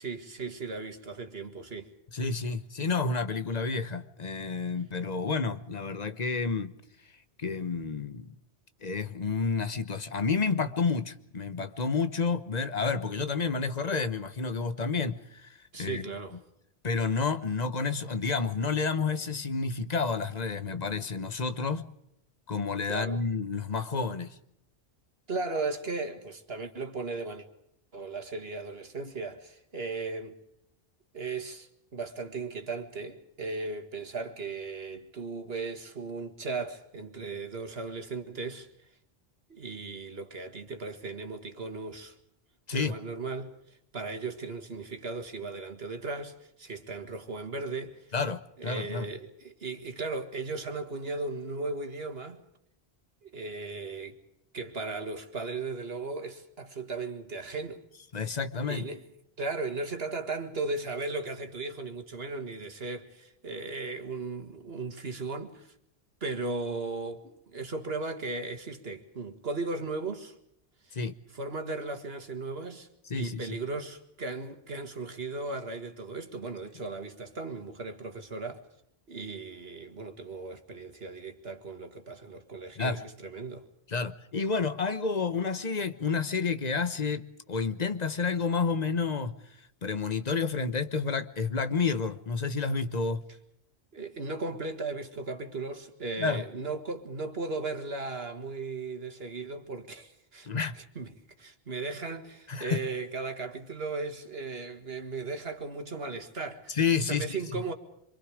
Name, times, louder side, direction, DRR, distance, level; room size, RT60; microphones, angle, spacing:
voice 1, 0.0-1.9 15.7-16.4 22.9-23.2 25.3-27.5 27.9-30.4 31.1-38.7 39.5-42.2 42.7-48.1 48.6-52.4 53.2-54.2 54.5-57.8 58.7-59.0 59.4-65.7 66.2-70.4 70.8-70.9 71.3-72.9 73.2-78.6 79.1-83.7 93.9-100.5 100.7-101.1 101.4-106.8 107.1-107.7, right 3 dB, 75° right, 2.2 m, -36 dB
voice 2, 2.1-6.7 7.4-8.3 8.8-16.1 16.8-21.9 22.5-24.4 42.7-42.9 48.1-49.1 58.1-58.8 70.9-71.1 73.1-73.4 82.8-83.0 83.9-89.3 89.8-93.2 96.2-96.4 100.5-100.7 102.5-102.9 106.7-107.4, left 4 dB, 45° left, 1.2 m, -30 dB
26.0 x 25.0 x 5.0 m
omnidirectional pair, 1.1 m